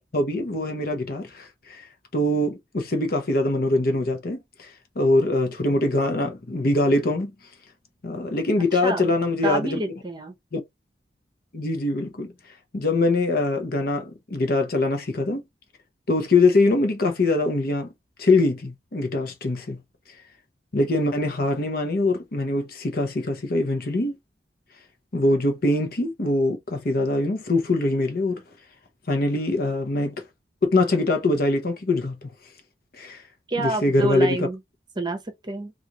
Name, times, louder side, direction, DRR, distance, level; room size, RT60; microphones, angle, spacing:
voice 1, 0.0-1.9 2.1-7.3 8.0-9.8 10.5-10.6 11.5-12.3 12.7-15.4 16.1-17.9 18.2-19.8 20.7-24.2 25.1-28.4 29.1-30.2 30.6-32.3 33.0-33.2 33.6-34.4, left 2 dB, 55° left, 0.8 m, -23 dB
voice 2, 8.7-9.1 9.4-10.3 33.5-34.6 35.0-35.7, right 2 dB, 25° right, 0.8 m, -28 dB
3.9 x 2.5 x 2.9 m
head